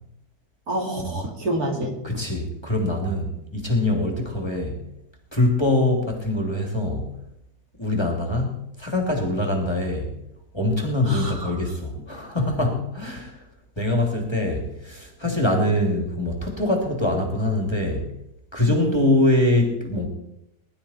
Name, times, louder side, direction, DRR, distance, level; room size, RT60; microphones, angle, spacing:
voice 1, 0.7-2.0 11.0-11.6 18.7-18.9, right 1 dB, 60° right, 0 dB, 3.3 m, -28 dB
voice 2, 2.0-4.8 5.3-7.1 7.8-10.1 10.5-13.4 13.8-18.1 18.5-20.1, left 1 dB, 15° left, 1 dB, 2.8 m, -23 dB
21.0 x 12.0 x 4.3 m, 0.79 s
omnidirectional pair, 1.8 m